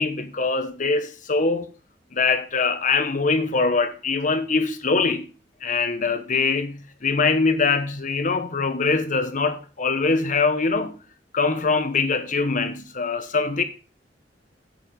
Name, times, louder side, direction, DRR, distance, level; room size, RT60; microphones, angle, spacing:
voice 1, 0.0-1.7 2.1-5.2 5.6-11.0 11.3-13.6, left 4 dB, 45° left, 1.2 m, -23 dB
9.3 x 6.9 x 5.3 m
head